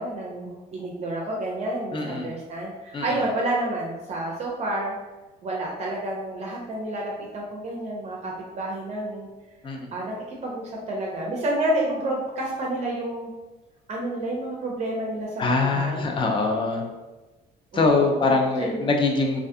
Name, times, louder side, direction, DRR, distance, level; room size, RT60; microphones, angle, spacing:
voice 1, 0.0-4.9 5.4-9.3 9.9-13.3 13.9-16.1 17.7-18.9, right 1 dB, 40° right, -2 dB, 0.5 m, -30 dB
voice 2, 1.9-2.3 2.9-3.2 9.6-9.9 15.4-16.8 17.7-19.4, left 3 dB, 30° left, 2 dB, 0.4 m, -23 dB
2.4 x 2.3 x 2.6 m, 1.1 s
cardioid pair, 110°, 17 cm